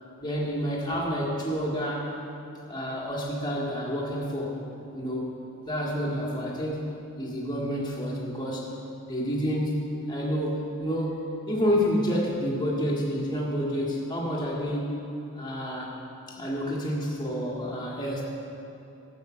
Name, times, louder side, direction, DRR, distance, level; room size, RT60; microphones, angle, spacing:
voice 1, 0.2-2.1 2.7-4.6 4.9-5.3 5.7-8.7 9.1-14.9 15.4-15.9 16.3-18.2, equal, 20° left, -4 dB, 1.8 m, -29 dB
12.0 x 5.9 x 7.5 m, 2.9 s
head